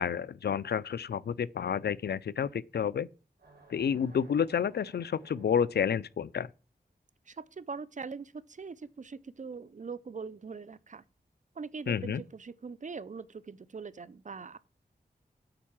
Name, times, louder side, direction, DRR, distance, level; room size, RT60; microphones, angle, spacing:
voice 1, 0.0-3.1 3.7-6.5 11.9-12.2, left 7 dB, 80° left, 0.4 m, -30 dB
sound 1, 3.4-6.3, right 2 dB, 75° right, 3.5 m, -58 dB
voice 2, 7.3-11.0 11.6-14.6, right 5 dB, 50° right, 0.6 m, -42 dB
8.9 x 4.6 x 7.3 m
wide cardioid pair, 65°, 17 cm